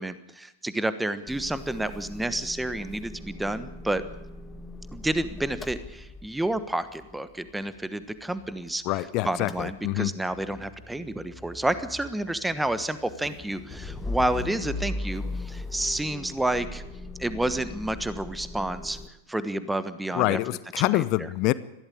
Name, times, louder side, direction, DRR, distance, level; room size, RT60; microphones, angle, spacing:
voice 1, 0.0-4.0 4.9-8.8 9.2-16.8 17.2-19.0 19.3-20.4 20.8-21.3, right 1 dB, 5° right, 13 dB, 1.2 m, -30 dB
Motor vehicle (road) / Engine starting / Idling, 1.3-9.0 9.2-19.1, left 2 dB, 10° left, 1.8 m, -39 dB
voice 2, 8.9-10.1 20.1-21.5, left 18 dB, 40° left, 17 dB, 0.8 m, -26 dB
21.0 x 15.0 x 8.7 m, 0.96 s
figure-of-eight pair, 90°, 0 cm